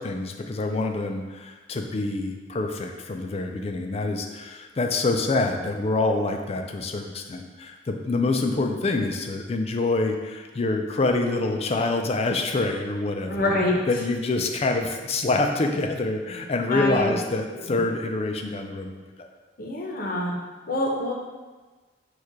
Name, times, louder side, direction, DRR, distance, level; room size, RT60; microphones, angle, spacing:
voice 1, 0.0-13.5 13.9-19.3, left 2 dB, 35° left, 4 dB, 0.4 m, -26 dB
voice 2, 13.3-13.8 16.7-17.1 17.7-17.8 19.6-20.4 20.7-21.1, left 1 dB, 50° left, -1 dB, 0.8 m, -25 dB
4.5 x 2.4 x 4.8 m, 1.3 s
head